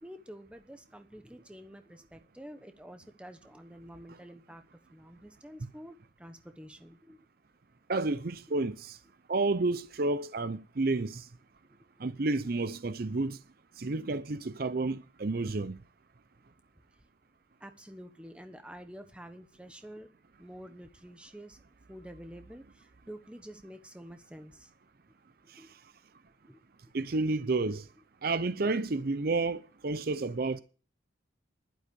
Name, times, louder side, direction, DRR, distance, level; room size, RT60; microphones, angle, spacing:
voice 1, 0.0-4.6 4.9-7.2 12.7-12.8 17.6-20.1 20.4-21.6 21.9-24.7 25.6-25.7 26.4-26.6 28.6-28.8, equal, 5° right, 1.1 m, -49 dB
voice 2, 7.9-9.0 9.3-11.3 12.0-13.4 13.8-15.8 25.5-25.6 26.9-27.9 28.2-30.6, right 3 dB, 50° right, 0.6 m, -30 dB
11.5 x 11.0 x 5.3 m
head